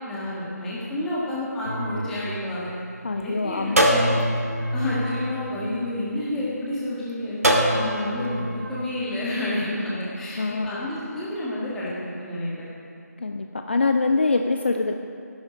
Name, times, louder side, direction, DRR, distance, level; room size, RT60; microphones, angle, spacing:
voice 1, 0.1-2.7 3.2-4.3 4.7-7.4 7.7-12.7, left 1 dB, 5° left, -8 dB, 1.7 m, -30 dB
sound 1, 1.6-3.1 3.8-6.3 7.4-8.8, equal, 55° right, 2.0 m, -25 dB
voice 2, 3.0-3.9 10.4-10.9 13.2-14.9, left 3 dB, 40° left, 5 dB, 0.6 m, -24 dB
19.0 x 11.5 x 5.3 m, 2.5 s
figure-of-eight pair, 160°, 9 cm